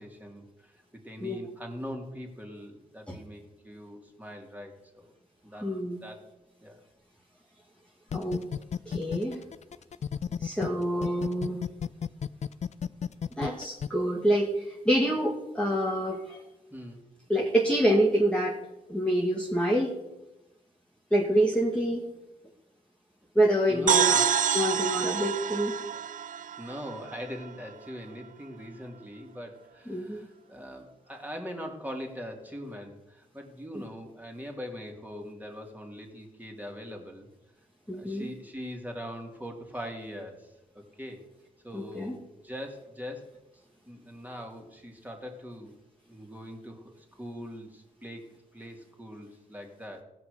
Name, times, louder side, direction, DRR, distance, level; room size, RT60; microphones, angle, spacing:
voice 1, 0.0-5.1 5.4-5.7 6.0-6.3 6.6-6.8 10.6-10.8 16.7-17.0 23.7-24.2 26.6-37.3 37.9-41.2 41.6-43.2 43.9-45.7 46.1-48.3 48.5-50.0, equal, 10° right, 1 dB, 3.0 m, -42 dB
voice 2, 5.6-6.0 8.1-8.5 8.9-9.4 10.4-11.6 13.4-16.4 17.3-18.6 18.9-19.9 21.1-22.0 23.4-25.8 29.9-30.2 37.9-38.3 41.7-42.2, right 1 dB, 5° left, -2 dB, 1.9 m, -26 dB
sound 1, 8.1-10.7 11.0-13.9, left 7 dB, 45° left, 0.4 m, -32 dB
sound 2, 23.9-27.5, right 9 dB, 50° right, 0.4 m, -27 dB
15.5 x 6.0 x 6.8 m, 0.96 s
supercardioid pair, 50°, 17 cm